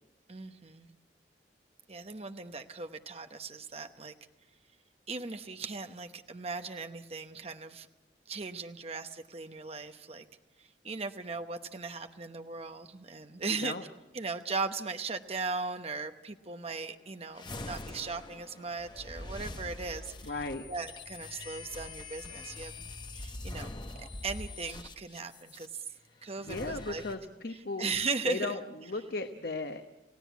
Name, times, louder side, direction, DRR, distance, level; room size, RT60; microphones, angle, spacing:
voice 1, 0.3-0.9 1.9-4.2 5.1-7.9 8.3-10.3 10.6-13.8 14.1-23.7 24.0-25.8 26.2-27.0 27.5-28.6, right 4 dB, 35° right, 7 dB, 0.9 m, -38 dB
sound 1, 17.4-25.7 26.4-27.1, left 2 dB, 25° left, 1.1 m, -43 dB
voice 2, 20.3-20.7 26.4-27.9 28.3-29.9, left 3 dB, 60° left, 6 dB, 1.1 m, -36 dB
29.0 x 16.5 x 8.3 m, 1.0 s
head